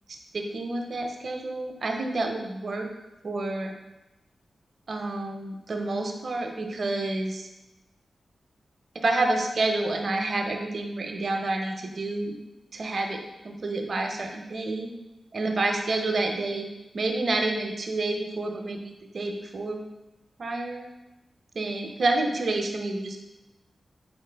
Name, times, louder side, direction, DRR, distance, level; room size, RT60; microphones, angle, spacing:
voice 1, 0.3-2.9 3.2-3.7 4.9-7.5 8.9-12.4 12.7-14.9 15.3-16.7 16.9-19.8 20.4-20.9 21.5-23.2, right 2 dB, 55° right, 3 dB, 0.6 m, -29 dB
4.3 x 3.7 x 3.3 m, 1.0 s
wide cardioid pair, 90°, 0 cm